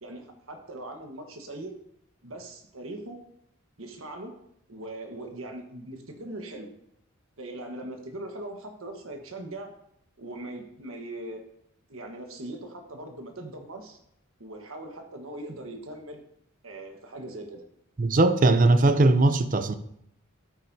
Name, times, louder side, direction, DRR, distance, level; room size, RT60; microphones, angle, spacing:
voice 1, 0.0-1.7 2.2-3.2 3.8-4.3 4.7-6.7 7.4-9.7 10.2-11.5 11.9-14.0 14.4-16.2 16.6-17.6, right 1 dB, 75° right, 1.3 m, -40 dB
voice 2, 18.0-19.7, right 2 dB, 40° right, 0.6 m, -20 dB
12.0 x 9.2 x 2.7 m
head